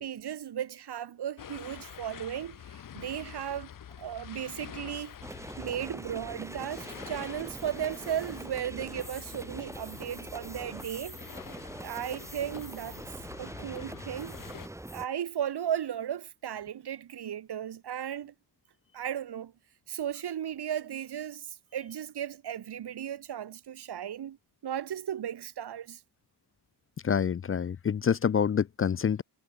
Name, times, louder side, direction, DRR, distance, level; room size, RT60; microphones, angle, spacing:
voice 1, 0.0-3.7 4.0-5.1 5.6-11.2 11.8-13.0 13.4-14.4 14.9-18.3 18.9-19.5 19.9-24.4 24.6-26.0, right 10 dB, 80° right, 1.4 m, -35 dB
sound 1, 1.4-14.7, left 9 dB, 55° left, 0.9 m, -47 dB
sound 2, 5.2-15.1, right 1 dB, 5° right, 1.4 m, -43 dB
voice 2, 27.0-29.2, left 7 dB, 35° left, 0.4 m, -27 dB
wide cardioid pair, 145°, 39 cm